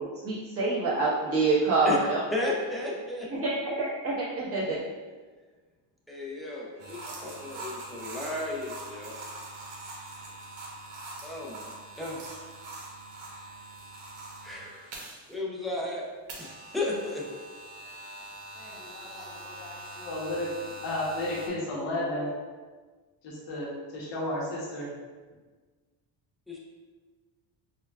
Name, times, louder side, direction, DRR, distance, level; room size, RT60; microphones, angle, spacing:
voice 1, 0.0-2.2 3.3-4.8 7.0-7.1, right 3 dB, 30° right, -9 dB, 1.1 m, -27 dB
voice 2, 2.3-3.3 6.1-9.2 11.2-11.7 12.0-12.5 14.4-14.9 15.3-16.1 16.4-17.3 26.5-26.6, left 2 dB, ahead, -4 dB, 0.4 m, -34 dB
sound 1, 6.8-15.3 16.3-21.5, right 2 dB, 75° right, 1.0 m, -43 dB
voice 3, 6.9-7.4 18.5-22.4 23.2-24.9, left 1 dB, 70° left, -4 dB, 1.0 m, -34 dB
5.4 x 2.3 x 2.3 m, 1.4 s
cardioid pair, 135°, 45 cm